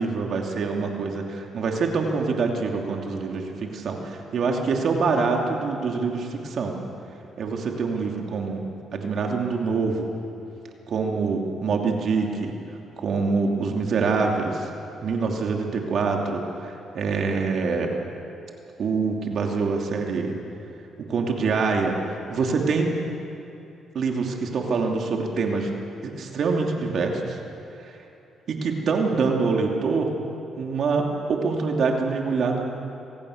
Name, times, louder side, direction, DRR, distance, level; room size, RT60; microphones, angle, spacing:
voice 1, 0.0-6.8 7.4-8.6 8.9-10.1 10.9-12.5 13.0-14.7 15.0-18.0 18.8-20.4 21.1-22.0 22.3-22.9 23.9-25.7 26.0-27.4 28.5-30.1 30.6-32.7, right 4 dB, 60° right, 1 dB, 2.9 m, -25 dB
26.0 x 17.5 x 6.6 m, 2.8 s
cardioid pair, 90°, 0 cm